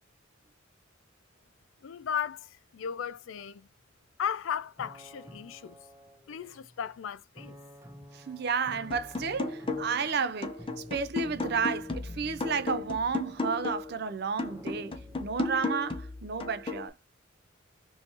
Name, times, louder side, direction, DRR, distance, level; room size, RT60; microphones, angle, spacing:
voice 1, 1.8-3.7 4.2-5.8 6.3-7.6, left 8 dB, 75° left, 0.4 m, -36 dB
sound 1, 4.3-4.4 4.8-6.8 7.4-15.7, equal, 15° right, 0.8 m, -51 dB
voice 2, 8.1-10.6 10.9-16.9, right 5 dB, 55° right, 0.5 m, -32 dB
sound 2, 8.9-10.1 10.4-14.0 14.4-16.9, left 3 dB, 25° left, 0.6 m, -35 dB
3.3 x 3.1 x 2.8 m
head